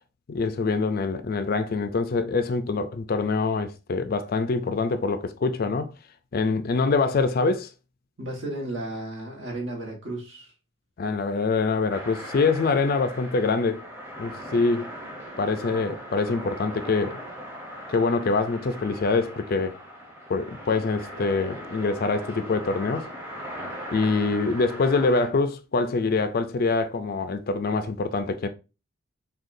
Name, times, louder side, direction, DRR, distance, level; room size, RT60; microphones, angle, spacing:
voice 1, 0.3-5.9 6.3-7.7 11.0-13.8 14.2-14.9 15.4-17.2 17.9-19.7 20.3-23.1 23.9-28.5, left 4 dB, 45° left, 0.4 m, -25 dB
voice 2, 8.2-10.5, right 1 dB, 60° right, 1.4 m, -34 dB
sound 1, 11.9-25.3, equal, 10° right, 0.9 m, -39 dB
6.3 x 2.3 x 2.6 m
head